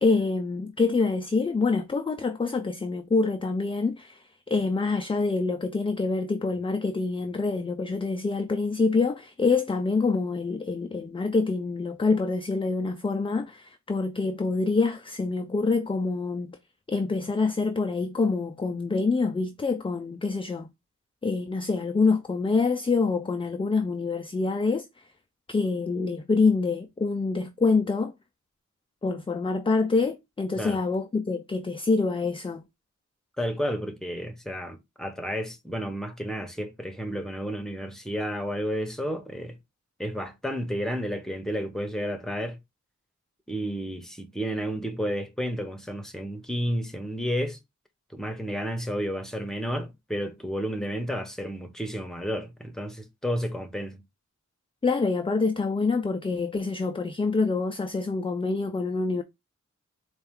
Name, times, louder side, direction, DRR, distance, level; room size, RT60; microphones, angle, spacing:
voice 1, 0.0-16.6 16.9-20.7 21.2-25.1 25.5-28.1 29.0-32.6 54.8-59.2, left 4 dB, 20° left, 0.3 m, -26 dB
voice 2, 33.4-39.6 40.0-42.6 43.5-47.6 48.1-54.0, equal, ahead, 0.8 m, -31 dB
4.2 x 2.3 x 3.5 m
wide cardioid pair, 90°, 30 cm